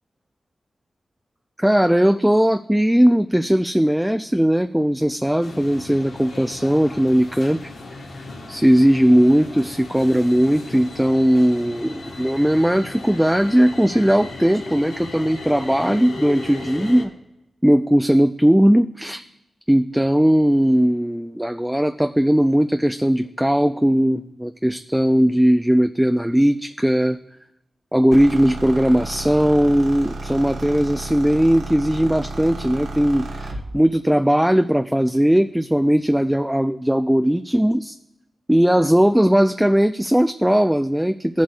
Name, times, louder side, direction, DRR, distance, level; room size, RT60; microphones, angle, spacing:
voice 1, 1.6-7.7 8.5-17.1 17.6-19.2 19.7-27.2 27.9-38.0 38.5-41.4, equal, 5° right, 8 dB, 0.3 m, -18 dB
sound 1, 5.4-17.0, left 3 dB, 85° left, 1.5 m, -36 dB
sound 2, 28.1-33.7, right 2 dB, 80° right, 1.4 m, -32 dB
18.5 x 7.5 x 2.4 m, 0.92 s
cardioid pair, 75°, 0 cm